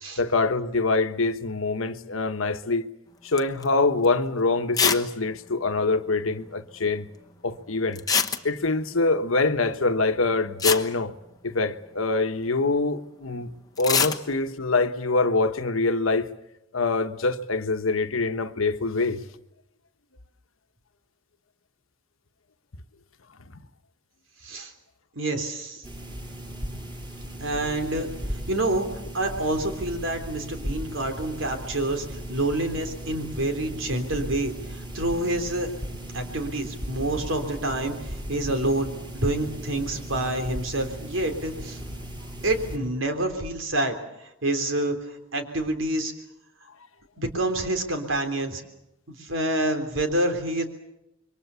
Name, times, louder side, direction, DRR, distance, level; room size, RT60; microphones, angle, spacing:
voice 1, 0.2-2.9 3.2-7.1 7.4-8.0 8.4-11.1 11.4-13.5 13.8-16.3 16.7-19.2, left 3 dB, 80° left, 1.3 m, -24 dB
sound 1, 3.4-3.7 4.0-4.1 4.7-5.1 5.3-5.4 5.6-5.7 8.0-8.8 10.2-10.3 10.6-11.8 13.8-14.2, left 6 dB, 20° left, 1.1 m, -24 dB
voice 2, 24.4-24.7 25.1-25.8 27.4-35.7 36.1-41.8 42.4-46.1 47.2-48.6 49.1-50.6, right 1 dB, 70° right, 3.5 m, -28 dB
sound 2, 25.8-42.8, equal, 20° right, 7.3 m, -37 dB
27.0 x 23.5 x 6.9 m
head